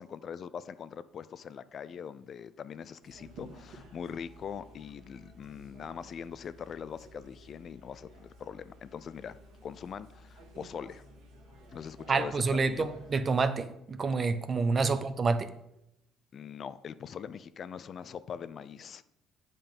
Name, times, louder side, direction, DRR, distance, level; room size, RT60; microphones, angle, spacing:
voice 1, 0.0-9.4 9.6-11.0 11.7-12.9 14.8-14.9 16.3-19.1, left 7 dB, 50° left, 15 dB, 0.5 m, -42 dB
sound 1, 3.0-13.2, right 1 dB, 70° right, 2.3 m, -53 dB
voice 2, 12.1-15.5, right 4 dB, 40° right, 11 dB, 0.9 m, -28 dB
8.7 x 5.4 x 5.5 m, 0.82 s
hypercardioid pair, 65°, 0 cm